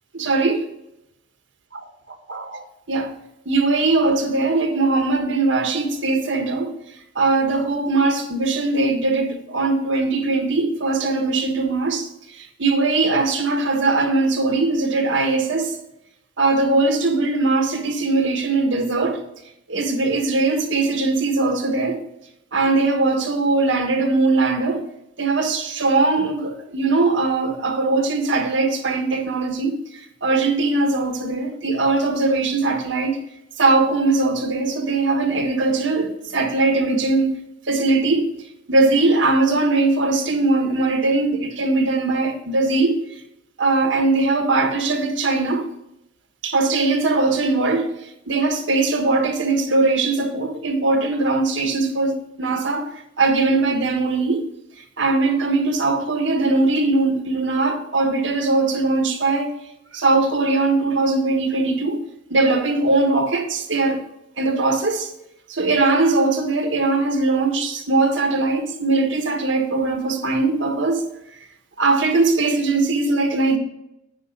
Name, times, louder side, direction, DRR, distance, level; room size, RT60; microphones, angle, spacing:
voice 1, 0.1-0.7 2.3-2.6 2.9-3.2 3.4-6.7 7.1-12.1 12.3-15.8 16.4-19.2 19.7-22.0 22.5-24.8 25.2-29.8 30.2-33.2 33.6-37.4 37.7-38.3 38.7-43.0 43.6-45.7 46.4-47.9 48.3-52.9 53.2-54.4 55.0-59.5 59.9-62.0 62.3-64.0 64.4-65.1 65.5-71.0 71.8-73.6, right 3 dB, 70° right, 1.4 m, -20 dB
10.0 x 5.7 x 5.2 m
head